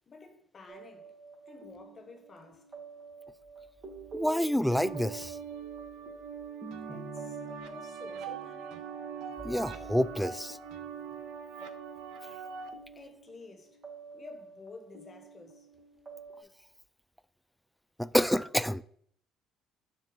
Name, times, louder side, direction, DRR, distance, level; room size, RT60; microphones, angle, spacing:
voice 1, 0.1-1.1 1.5-2.7 6.8-8.9 12.9-13.8 14.1-15.7, left 3 dB, 40° left, 1.4 m, -51 dB
sound 1, 0.7-16.4, right 3 dB, 45° right, 2.0 m, -49 dB
voice 2, 4.1-5.4 9.4-10.6 18.0-18.8, equal, ahead, 0.3 m, -28 dB
sound 2, 4.7-12.7, right 7 dB, 75° right, 0.6 m, -42 dB
7.1 x 2.7 x 5.3 m
hypercardioid pair, 60°, 0 cm